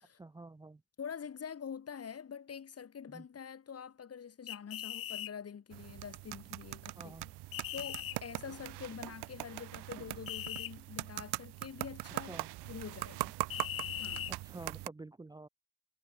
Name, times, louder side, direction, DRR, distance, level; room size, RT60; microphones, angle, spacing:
voice 1, 0.1-0.8 3.1-3.3 7.0-7.3 12.3-12.5 14.3-15.5, right 2 dB, 10° right, 0.7 m, -49 dB
voice 2, 1.0-7.3 7.7-12.4 12.7-13.3 14.0-14.3, left 7 dB, 40° left, 2.0 m, -46 dB
sound 1, 4.5-5.3 7.5-8.2 10.3-10.7 13.5-14.3, left 13 dB, 60° left, 1.5 m, -40 dB
sound 2, 5.7-14.9, right 19 dB, 80° right, 1.0 m, -41 dB
cardioid pair, 90°, 39 cm